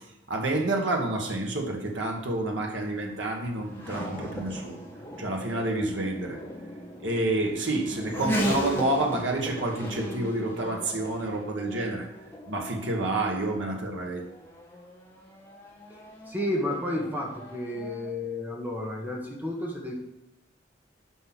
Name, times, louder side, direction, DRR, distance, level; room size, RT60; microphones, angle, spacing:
voice 1, 0.3-4.8 5.2-6.4 7.0-12.1 12.5-14.2, right 2 dB, 75° right, 0 dB, 1.7 m, -29 dB
Race car auto racing / Accelerating revving vroom, 1.9-18.1, equal, 15° left, 2.0 m, -38 dB
voice 2, 15.9-19.9, left 1 dB, 10° right, -2 dB, 1.7 m, -32 dB
10.0 x 5.8 x 6.2 m, 0.95 s
head